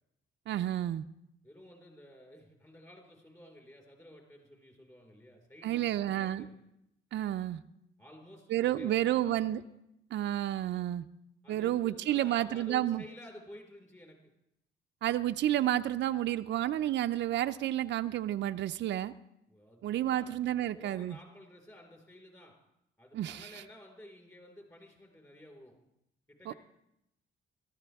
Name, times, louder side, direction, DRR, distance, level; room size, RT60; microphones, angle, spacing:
voice 1, 0.5-1.0 5.6-6.4 7.1-7.6 8.5-9.6 10.1-11.0 11.5-13.0 15.0-19.1 19.8-21.2 23.1-23.5 26.5-26.6, right 12 dB, 65° right, 8 dB, 0.5 m, -30 dB
voice 2, 1.4-6.6 8.0-9.6 11.4-14.2 19.5-22.5 23.0-25.7 26.3-26.6, left 1 dB, 15° left, 1 dB, 4.6 m, -53 dB
18.0 x 13.5 x 3.5 m, 0.82 s
cardioid pair, 90°, 20 cm